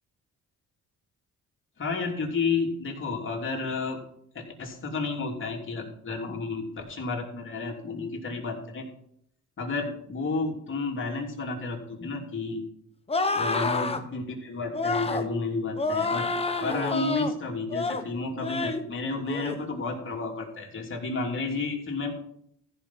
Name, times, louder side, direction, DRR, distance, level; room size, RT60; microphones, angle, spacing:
voice 1, 1.8-4.0 4.3-8.9 9.6-12.6 13.3-16.3 16.6-22.1, left 3 dB, 40° left, 0 dB, 3.2 m, -31 dB
sound 1, 13.1-14.0 14.7-15.3 15.8-17.3 17.7-18.0 18.4-18.8 19.3-19.6, left 3 dB, 20° left, 1.1 m, -28 dB
14.5 x 5.5 x 5.8 m, 0.71 s
cardioid pair, 90°, 30 cm